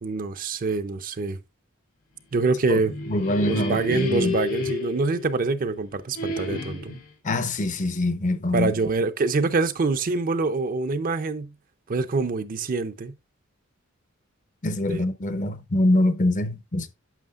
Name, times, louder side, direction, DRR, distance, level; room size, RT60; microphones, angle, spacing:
voice 1, 0.0-1.4 2.3-2.9 3.5-6.9 8.5-11.5 11.9-13.1 14.8-15.0, right 3 dB, 45° right, 0.5 m, -25 dB
sound 1, 2.6-5.7 6.2-7.1, left 3 dB, 90° left, 2.4 m, -31 dB
voice 2, 3.1-4.4 7.2-8.7 14.6-16.9, left 1 dB, 40° left, 0.6 m, -24 dB
9.1 x 6.3 x 2.4 m
head